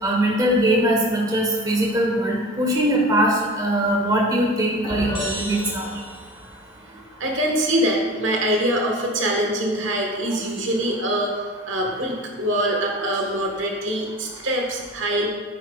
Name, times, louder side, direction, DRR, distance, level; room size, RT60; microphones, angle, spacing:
voice 1, 0.0-5.9, right 1 dB, 20° right, -1 dB, 1.2 m, -21 dB
sound 1, 4.8-6.5, equal, 25° left, 2.5 m, -31 dB
voice 2, 6.9-15.3, right 1 dB, 75° right, 0 dB, 1.4 m, -24 dB
10.0 x 8.9 x 2.4 m, 1.4 s
head